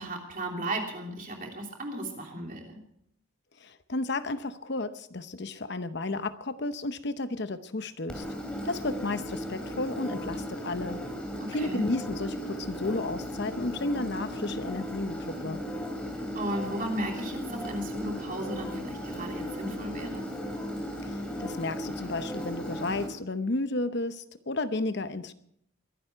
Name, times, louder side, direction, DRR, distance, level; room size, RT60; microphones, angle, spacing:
voice 1, 0.0-2.8 11.4-11.9 16.3-20.3, right 1 dB, 40° right, 1 dB, 3.1 m, -35 dB
voice 2, 3.6-8.2 8.6-11.1 11.5-15.7 21.0-25.3, left 2 dB, 55° left, 12 dB, 0.8 m, -33 dB
Engine, 8.1-23.1, equal, 5° left, 2.8 m, -36 dB
22.5 x 11.5 x 4.6 m, 0.71 s
head